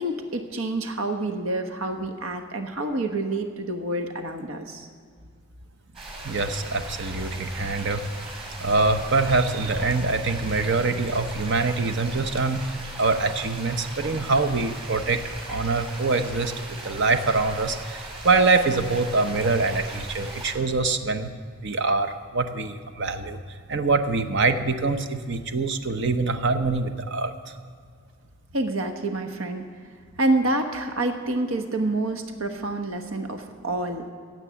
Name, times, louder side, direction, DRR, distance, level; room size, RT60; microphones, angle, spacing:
voice 1, 0.0-4.9 28.5-29.7 30.2-34.1, right 2 dB, 75° right, 6 dB, 1.2 m, -27 dB
sound 1, 5.9-20.5, right 2 dB, 30° right, 4.4 m, -38 dB
voice 2, 6.2-8.1 8.6-12.6 13.0-15.2 15.5-21.3 21.6-23.4 23.7-27.3, right 3 dB, 60° right, 8 dB, 0.8 m, -24 dB
16.5 x 8.0 x 7.0 m, 2.1 s
head